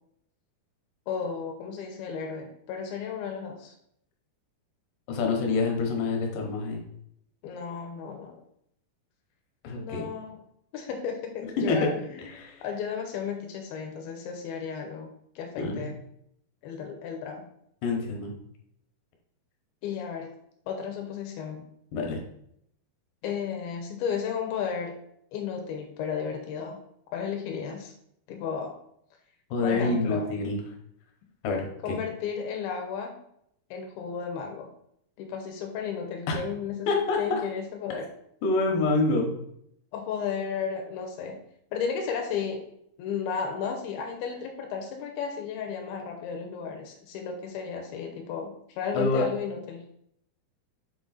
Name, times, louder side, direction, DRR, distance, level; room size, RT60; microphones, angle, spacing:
voice 1, 1.1-3.7 7.4-8.4 9.8-10.4 10.7-12.2 12.6-15.1 15.4-16.0 16.6-17.5 19.8-20.3 20.7-21.6 23.2-25.0 25.3-26.8 27.1-27.9 28.3-28.7 29.6-30.3 31.8-33.2 33.7-34.7 35.2-38.1 39.9-41.4 41.7-42.6 43.0-49.9, left 6 dB, 85° left, 3 dB, 2.6 m, -33 dB
voice 2, 5.1-6.8 9.6-10.0 11.7-11.8 12.4-12.6 15.5-15.9 17.8-18.3 21.9-22.2 29.5-30.6 31.4-32.0 36.3-36.4 36.9-37.4 38.4-39.3 48.9-49.2, left 3 dB, 70° left, 2 dB, 2.6 m, -26 dB
6.5 x 3.7 x 4.0 m, 0.72 s
omnidirectional pair, 4.4 m